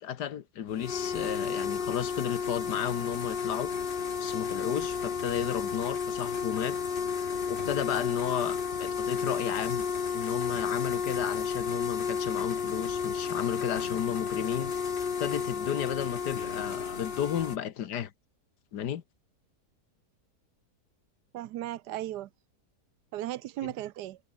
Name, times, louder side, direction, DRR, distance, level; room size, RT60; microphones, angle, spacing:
voice 1, 0.0-3.7 4.2-6.8 7.5-9.9 10.1-14.9 15.2-18.1 18.7-19.0, left 9 dB, 85° left, 1.7 m, -33 dB
sound 1, 0.7-17.6, left 6 dB, 40° left, 1.1 m, -32 dB
voice 2, 21.3-22.3 23.1-24.2, right 14 dB, 90° right, 1.3 m, -36 dB
omnidirectional pair, 1.7 m